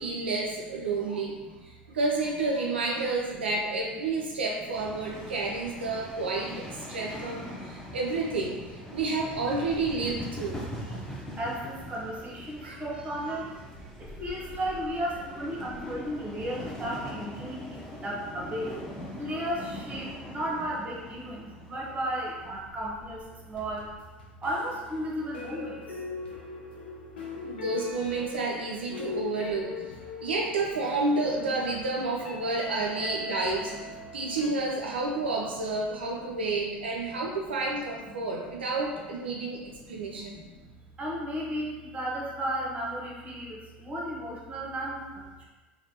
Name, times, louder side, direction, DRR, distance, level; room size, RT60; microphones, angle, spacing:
voice 1, 0.0-1.4 1.6-11.0 12.6-12.8 27.4-29.7 30.2-40.4, right 3 dB, 80° right, -2 dB, 0.3 m, -30 dB
sound 1, 4.7-24.0, equal, 5° left, 0.6 m, -42 dB
voice 2, 11.4-18.7 19.2-23.9 24.4-26.0 28.8-29.2 29.7-29.9 31.1-31.2 32.8-33.0 33.9-34.0 37.1-37.2 38.1-38.7 39.3-40.7 41.0-45.4, equal, 25° right, -3 dB, 0.8 m, -35 dB
sound 2, 23.6-34.5, left 2 dB, 75° left, 0.5 m, -40 dB
3.2 x 2.2 x 2.8 m, 1.2 s
figure-of-eight pair, 75°, 6 cm